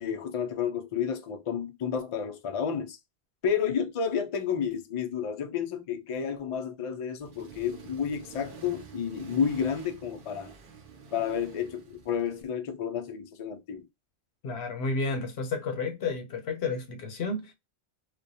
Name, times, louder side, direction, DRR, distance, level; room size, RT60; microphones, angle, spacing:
voice 1, 0.0-3.0 3.4-10.5 11.1-13.8, left 7 dB, 55° left, 0.3 m, -31 dB
Accelerating revving vroom, 7.2-12.4, right 6 dB, 60° right, 0.7 m, -48 dB
voice 2, 14.4-17.5, left 3 dB, 80° left, 0.9 m, -31 dB
2.3 x 2.1 x 2.6 m
omnidirectional pair, 1.0 m